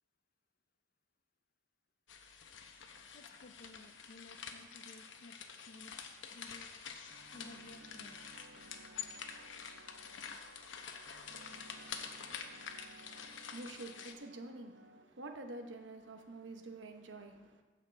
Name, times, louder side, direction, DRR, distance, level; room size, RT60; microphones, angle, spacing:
sound 1, 2.1-14.1, left 6 dB, 80° left, 0.8 m, -48 dB
voice 1, 3.1-5.4 5.7-5.9 6.3-6.7 7.3-8.2, left 2 dB, 50° left, 0.5 m, -56 dB
sound 2, 7.1-15.0, right 2 dB, 50° right, 0.8 m, -59 dB
voice 2, 13.2-17.6, right 2 dB, 75° right, 1.0 m, -48 dB
15.0 x 5.9 x 3.3 m
head